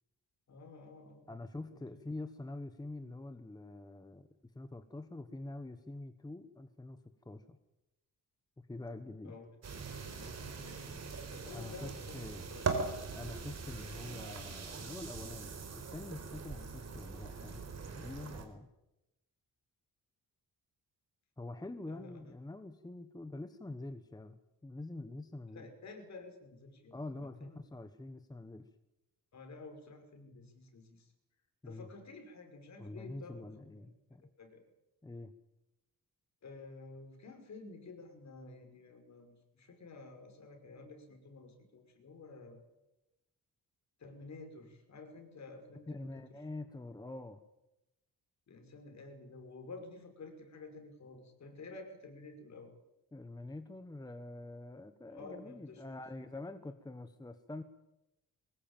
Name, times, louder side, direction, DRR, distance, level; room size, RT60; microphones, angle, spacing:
voice 1, 0.5-1.3 1.6-2.0 9.2-9.5 10.0-12.2 12.5-12.6 21.9-22.3 25.5-27.7 29.3-31.1 31.6-33.8 34.4-34.6 36.4-42.6 44.0-46.4 48.5-52.7 55.1-56.3, left 3 dB, 50° left, 4 dB, 5.6 m, -51 dB
voice 2, 1.3-4.3 4.5-7.0 7.2-7.6 8.7-9.4 11.5-12.5 13.1-17.6 18.0-18.7 21.4-25.7 26.9-28.7 31.6-31.9 32.8-34.3 35.0-35.3 45.9-47.4 53.1-57.6, left 2 dB, 10° left, 9 dB, 1.1 m, -45 dB
sound 1, 9.6-18.5, right 4 dB, 45° right, 4.2 m, -41 dB
23.5 x 20.5 x 9.0 m, 0.95 s
wide cardioid pair, 170°, 36 cm